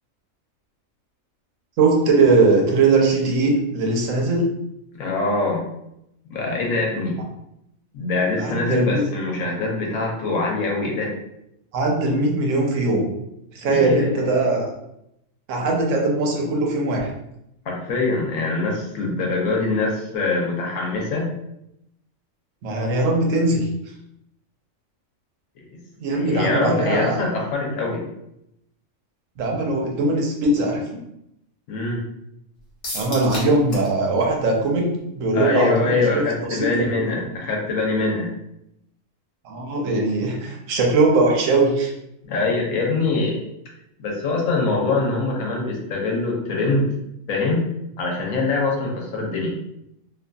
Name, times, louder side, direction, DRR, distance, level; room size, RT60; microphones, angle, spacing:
voice 1, 1.8-4.5 8.4-9.0 11.7-13.1 13.5-14.6 15.5-17.1 22.6-23.7 26.0-27.2 29.4-31.0 32.9-36.2 36.5-37.1 39.4-41.9, right 3 dB, 70° right, 0 dB, 0.9 m, -20 dB
voice 2, 5.0-5.7 6.3-7.2 7.9-11.1 13.6-14.3 17.7-21.3 25.7-25.8 26.1-28.0 31.7-32.0 35.3-38.3 42.2-43.4 44.0-46.9 47.3-47.6 48.0-49.5, left 3 dB, 85° left, -1 dB, 1.1 m, -23 dB
sound 1, 32.8-33.9 34.2-34.3 34.7-34.8, left 1 dB, 70° left, 1.3 m, -32 dB
2.6 x 2.5 x 2.2 m, 0.82 s
omnidirectional pair, 1.4 m